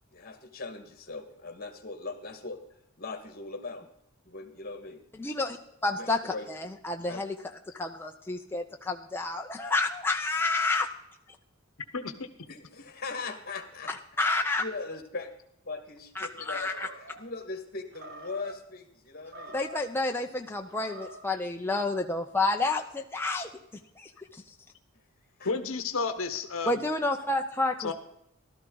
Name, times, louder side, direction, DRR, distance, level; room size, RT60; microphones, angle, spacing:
voice 1, 0.1-2.6 3.0-3.8 4.2-5.0 6.0-6.5 7.1-7.2 12.5-13.9 14.3-15.3 15.6-19.5 25.4-25.5, left 3 dB, 45° left, 8 dB, 1.7 m, -40 dB
voice 2, 5.2-7.3 7.7-10.9 13.9-14.7 16.2-16.9 19.5-23.5 24.0-24.5 26.7-27.9, left 2 dB, 10° left, 3 dB, 0.6 m, -30 dB
voice 3, 11.9-12.5 25.4-26.9 27.8-27.9, left 4 dB, 70° left, 9 dB, 1.0 m, -32 dB
Animal, 16.5-17.2 17.9-18.6 19.2-19.9 20.6-21.3, right 1 dB, 50° right, 2.5 m, -46 dB
15.0 x 12.5 x 3.9 m, 0.78 s
head